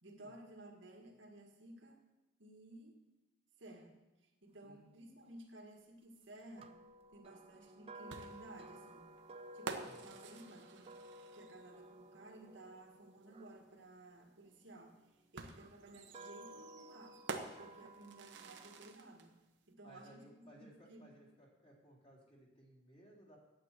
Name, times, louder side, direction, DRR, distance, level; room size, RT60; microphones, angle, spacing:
voice 1, 0.0-2.0 2.4-3.0 3.6-3.9 4.2-6.7 7.1-9.1 9.5-10.9 11.3-15.0 15.3-17.2 17.6-19.4 19.7-21.1, right 1 dB, 85° right, 2 dB, 1.8 m, -56 dB
sound 1, 6.6-14.7 15.5-18.9, right 1 dB, 30° right, 0.5 m, -56 dB
sound 2, 8.1-11.7 13.2-13.3 15.4-19.3, right 3 dB, 70° right, 1.0 m, -49 dB
voice 2, 9.8-10.1 19.8-23.4, right 1 dB, 35° left, -3 dB, 3.3 m, -61 dB
9.0 x 8.4 x 7.4 m, 1.0 s
head